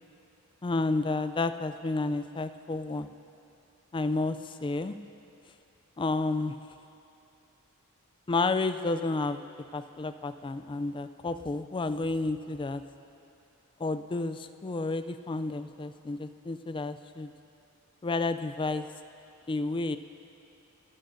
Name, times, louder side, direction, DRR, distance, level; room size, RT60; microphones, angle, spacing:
voice 1, 0.6-3.1 3.9-5.0 6.0-6.5 8.3-9.4 9.7-12.8 13.8-17.3 18.0-18.9 19.5-20.0, left 3 dB, 20° left, 10 dB, 0.4 m, -31 dB
30.0 x 11.5 x 2.7 m, 2.7 s
head